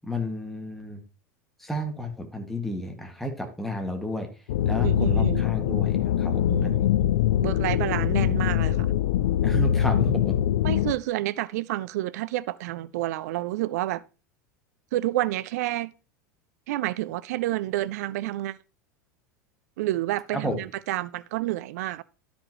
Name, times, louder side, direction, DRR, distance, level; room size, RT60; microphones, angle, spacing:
voice 1, 0.0-1.0 1.6-4.3 4.6-6.9 9.4-10.4 20.3-20.6, left 1 dB, ahead, 2.0 m, -32 dB
sound 1, 4.5-10.9, left 11 dB, 70° left, 0.5 m, -23 dB
voice 2, 4.8-5.5 6.5-6.8 7.4-8.9 10.6-14.0 14.9-15.9 16.7-18.6 19.8-22.0, right 15 dB, 65° right, 0.5 m, -29 dB
13.0 x 5.2 x 3.1 m
hypercardioid pair, 85°, 9 cm